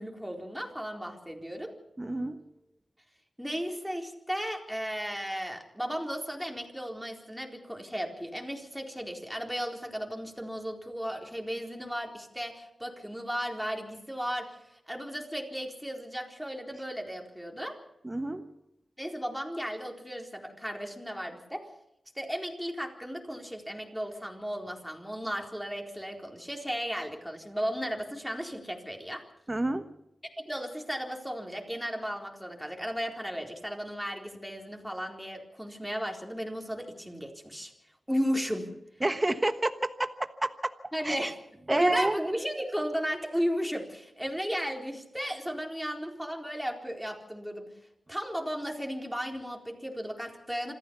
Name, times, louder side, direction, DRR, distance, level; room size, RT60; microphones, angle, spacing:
voice 1, 0.0-1.7 3.4-17.8 19.0-21.7 22.1-29.2 30.5-37.7 38.1-38.7 40.9-41.4 41.7-47.7 48.1-50.7, equal, ahead, 1 dB, 4.1 m, -35 dB
voice 2, 2.0-2.4 18.0-18.4 29.5-29.9 39.0-39.9 40.4-40.5 41.0-41.3 41.7-42.1, right 2 dB, 20° right, 9 dB, 1.2 m, -28 dB
26.5 x 14.0 x 7.0 m, 0.83 s
wide cardioid pair, 90°, 0 cm